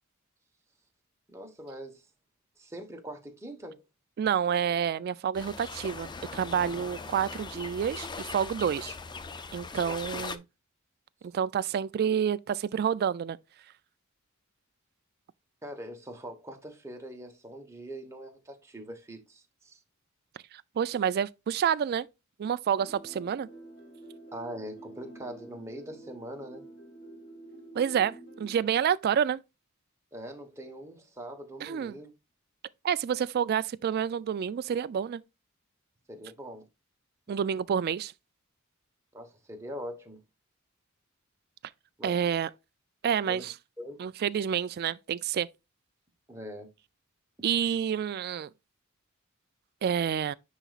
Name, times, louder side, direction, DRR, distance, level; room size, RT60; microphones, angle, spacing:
voice 1, 1.3-2.0 2.6-3.8 9.9-10.4 15.6-19.8 24.3-26.7 30.1-32.1 36.1-36.7 39.1-40.2 42.0-42.1 43.3-43.5 43.8-44.0 46.3-46.7, equal, 15° right, 1.2 m, -42 dB
voice 2, 4.2-9.0 9.5-10.4 11.3-13.4 20.5-22.1 22.4-23.5 27.7-29.4 31.6-32.0 32.8-35.2 37.3-38.1 42.0-42.5 43.0-43.5 44.0-45.5 47.4-48.5 49.8-50.3, right 8 dB, 45° right, 0.3 m, -28 dB
sound 1, 5.3-10.4, left 4 dB, 20° left, 0.4 m, -40 dB
sound 2, 22.7-28.7, right 2 dB, 55° left, 2.2 m, -49 dB
9.9 x 4.0 x 2.4 m
head